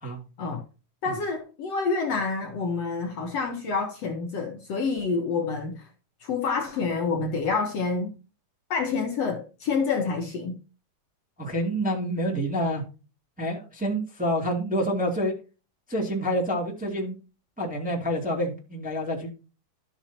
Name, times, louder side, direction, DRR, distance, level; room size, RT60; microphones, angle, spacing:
voice 1, 1.0-5.8 6.2-8.1 8.7-10.5, left 4 dB, 60° left, 2.0 m, -28 dB
voice 2, 11.4-12.8 13.4-15.3 15.9-17.2 17.6-19.3, equal, 5° right, 1.9 m, -27 dB
13.0 x 6.4 x 2.8 m
omnidirectional pair, 3.8 m